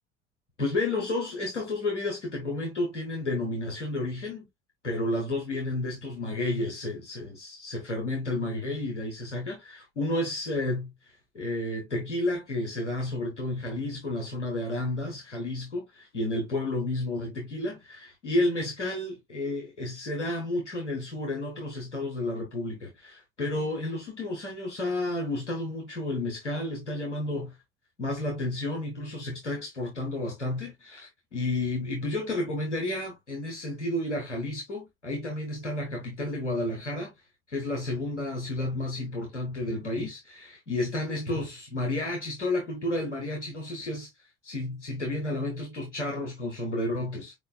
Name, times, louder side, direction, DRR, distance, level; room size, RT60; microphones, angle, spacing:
voice 1, 0.6-4.5 4.8-10.9 11.3-27.5 28.0-37.1 37.5-44.1 44.4-47.3, left 2 dB, 85° left, 1.3 m, -31 dB
5.1 x 4.5 x 2.3 m
figure-of-eight pair, 65°, 34 cm